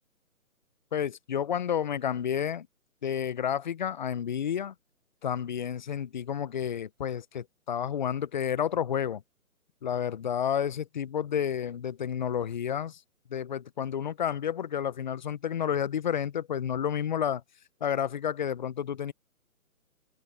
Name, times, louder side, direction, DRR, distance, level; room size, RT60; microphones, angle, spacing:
voice 1, 0.9-2.7 3.0-4.7 5.2-9.2 9.8-13.0 13.3-17.4 17.8-19.1, left 8 dB, 35° left, 0.7 m, -30 dB
open air
hypercardioid pair, 150°, 43 cm